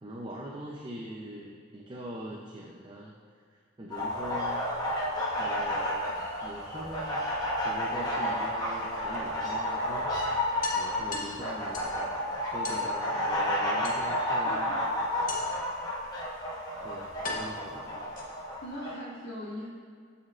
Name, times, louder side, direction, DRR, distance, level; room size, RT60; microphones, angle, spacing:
voice 1, 0.0-3.1 3.8-4.7 5.4-7.3 7.6-10.1 10.7-12.1 12.5-14.8 16.8-18.0, right 1 dB, 25° right, -3 dB, 0.5 m, -42 dB
sound 1, 3.9-18.9, left 1 dB, 20° left, 1.1 m, -31 dB
sound 2, 6.6-7.6 9.1-9.2 9.6-9.7 10.0-10.1 10.6-12.0 12.6-12.9 13.8-14.4 15.3-15.7 16.5-16.6 17.2-18.6, left 3 dB, 45° left, 0.8 m, -40 dB
voice 2, 11.1-11.5 14.5-14.6 18.6-19.7, left 1 dB, 65° left, -11 dB, 1.6 m, -40 dB
13.0 x 4.4 x 2.4 m, 2.1 s
head